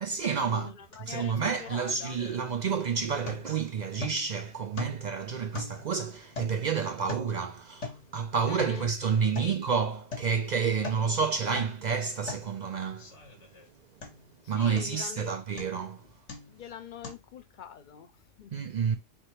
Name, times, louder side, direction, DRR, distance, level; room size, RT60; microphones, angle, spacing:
voice 1, 0.0-0.7 1.0-13.1 14.5-16.0 18.5-19.0, right 6 dB, 60° right, 0.4 m, -29 dB
voice 2, 0.5-2.2 8.5-8.9 9.4-9.6 10.8-11.3 14.4-15.3 16.5-18.5, left 8 dB, 50° left, 0.7 m, -44 dB
sound 1, 0.9-1.1 1.3-2.8 3.3-3.6 4.0-4.4 4.8-5.2 5.5-7.4 7.8-8.1 8.4-8.9 9.4-9.6 10.1-10.4 10.7-11.1 11.5-11.8 12.3-12.5 13.0-13.7 14.0-14.3 14.8-15.1 15.6-15.9 16.3-16.6 17.0-17.1, left 4 dB, 65° left, 1.5 m, -41 dB
3.5 x 2.8 x 4.3 m
omnidirectional pair, 1.3 m